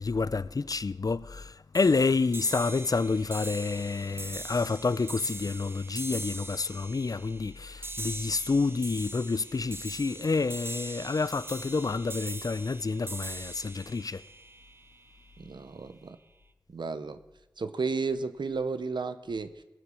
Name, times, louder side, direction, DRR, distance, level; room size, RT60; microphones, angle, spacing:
voice 1, 0.0-14.2, left 4 dB, 55° left, 0.4 m, -29 dB
sound 1, 1.7-15.2, right 2 dB, 30° right, 0.9 m, -41 dB
voice 2, 15.4-16.2 16.7-17.2 17.6-19.6, right 4 dB, 90° right, 0.7 m, -33 dB
19.5 x 7.3 x 6.3 m
wide cardioid pair, 45°, 8 cm